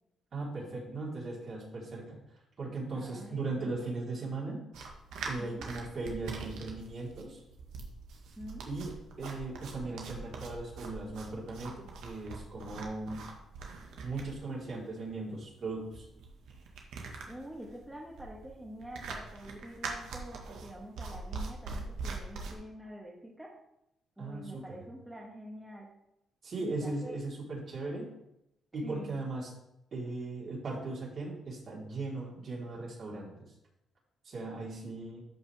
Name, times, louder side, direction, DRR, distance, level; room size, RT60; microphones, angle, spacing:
voice 1, 0.3-2.2 2.6-4.6 5.2-7.4 8.7-8.9 9.2-13.2 14.0-16.0 24.2-24.8 26.4-28.1 28.7-29.5 29.9-33.5 34.2-35.2, right 3 dB, 55° right, -4 dB, 3.9 m, -38 dB
voice 2, 2.9-3.9 5.4-5.7 8.4-8.7 17.0-23.6 24.2-25.9 26.6-27.2 28.8-29.1, equal, 10° right, -2 dB, 1.6 m, -46 dB
sound 1, 4.7-22.5, right 4 dB, 80° right, 1.6 m, -43 dB
13.0 x 5.8 x 3.5 m, 0.84 s
cardioid pair, 90°, 0 cm